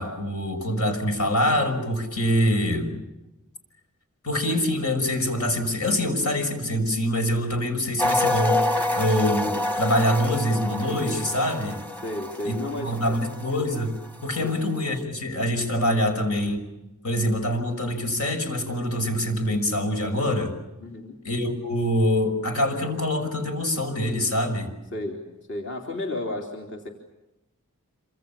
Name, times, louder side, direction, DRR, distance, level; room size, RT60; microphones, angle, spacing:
voice 1, 0.0-2.9 4.2-11.8 12.4-13.9 14.2-16.6 17.0-20.5 21.2-24.7, equal, 85° left, 6 dB, 5.9 m, -25 dB
sound 1, 8.0-14.0 14.3-14.5, left 2 dB, 10° left, 1.1 m, -27 dB
voice 2, 12.0-13.2 14.4-14.6 20.8-21.2 24.9-26.9, left 1 dB, 55° left, 1 dB, 3.4 m, -33 dB
27.0 x 26.0 x 7.2 m, 0.98 s
head